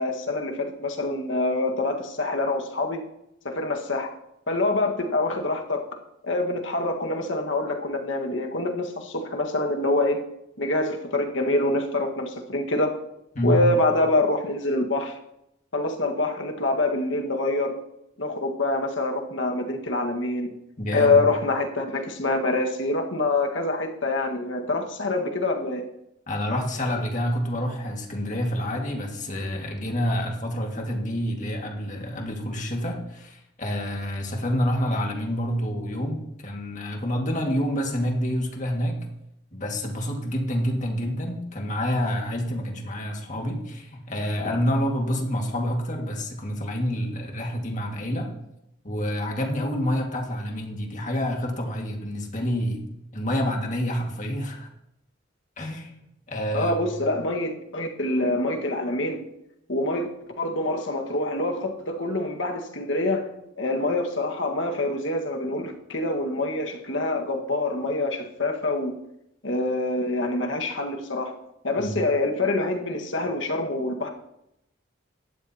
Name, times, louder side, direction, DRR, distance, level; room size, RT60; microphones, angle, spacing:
voice 1, 0.0-3.0 3.4-4.1 4.5-5.8 6.2-10.2 10.6-12.9 13.4-15.2 15.7-17.7 18.2-20.5 20.9-25.9 56.5-59.2 59.7-60.1 60.4-63.3 63.6-68.9 69.4-71.3 71.6-74.1, left 2 dB, 75° left, 3 dB, 1.6 m, -25 dB
voice 2, 13.4-13.7 20.8-21.2 26.3-39.0 39.5-48.3 48.8-52.8 53.1-54.7 55.6-56.0 56.3-56.9 71.8-72.0, equal, 40° left, 1 dB, 2.0 m, -28 dB
16.5 x 12.5 x 2.9 m, 0.84 s
head